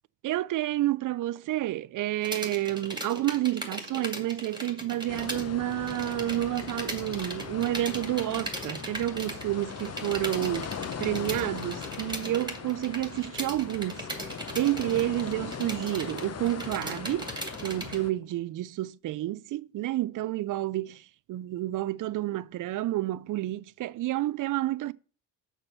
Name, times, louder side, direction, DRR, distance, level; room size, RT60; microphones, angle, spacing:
voice 1, 0.2-10.7 11.0-14.1 14.5-17.3 17.6-24.9, right 15 dB, 45° right, 0.4 m, -30 dB
sound 1, 2.2-5.5 5.7-18.0, right 1 dB, 10° right, 2.2 m, -38 dB
sound 2, 5.1-18.1, left 7 dB, 35° left, 0.9 m, -39 dB
6.7 x 5.8 x 5.9 m
supercardioid pair, 75°, 46 cm